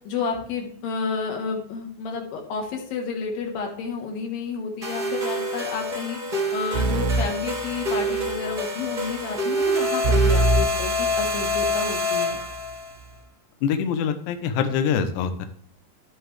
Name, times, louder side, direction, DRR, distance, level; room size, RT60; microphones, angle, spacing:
voice 1, 0.0-12.4, left 5 dB, 90° left, 1 dB, 3.2 m, -31 dB
sound 1, 4.8-12.9, left 1 dB, 40° right, 0.6 m, -26 dB
sound 2, 6.7-8.4 10.0-11.8, right 2 dB, 80° right, 2.4 m, -24 dB
voice 2, 13.6-15.5, left 7 dB, 70° left, 8 dB, 2.0 m, -24 dB
11.0 x 7.9 x 3.2 m, 0.62 s
omnidirectional pair, 4.0 m